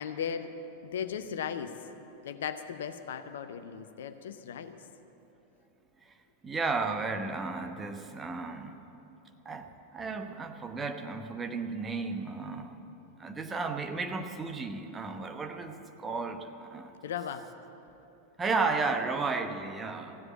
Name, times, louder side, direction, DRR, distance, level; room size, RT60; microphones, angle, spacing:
voice 1, 0.0-1.7 2.2-4.8 17.0-17.5, left 7 dB, 60° left, 10 dB, 0.7 m, -37 dB
voice 2, 6.4-8.8 9.4-9.7 9.9-12.8 13.2-16.9 18.4-20.2, right 4 dB, 15° right, 6 dB, 1.0 m, -33 dB
15.5 x 7.9 x 8.7 m, 3.0 s
figure-of-eight pair, 90°, 0 cm